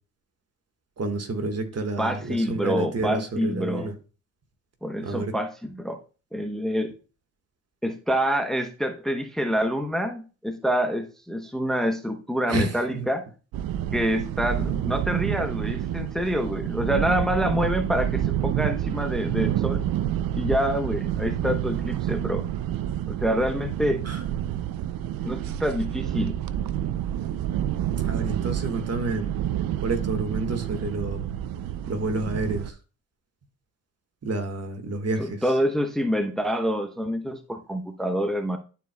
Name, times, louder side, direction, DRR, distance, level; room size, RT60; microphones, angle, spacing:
voice 1, 1.0-4.0 5.0-5.3 12.5-13.1 24.0-24.2 28.0-29.3 29.8-31.2 31.9-32.8 34.2-35.4, right 2 dB, 45° right, 1.6 m, -29 dB
voice 2, 2.0-3.9 4.8-6.0 6.3-6.9 7.8-13.2 13.9-19.8 20.3-22.5 23.1-24.0 25.2-26.4 35.2-38.6, equal, ahead, 0.9 m, -26 dB
sound 1, 13.5-32.7, right 11 dB, 75° right, 0.6 m, -28 dB
12.0 x 4.5 x 2.3 m
supercardioid pair, 60°, 35 cm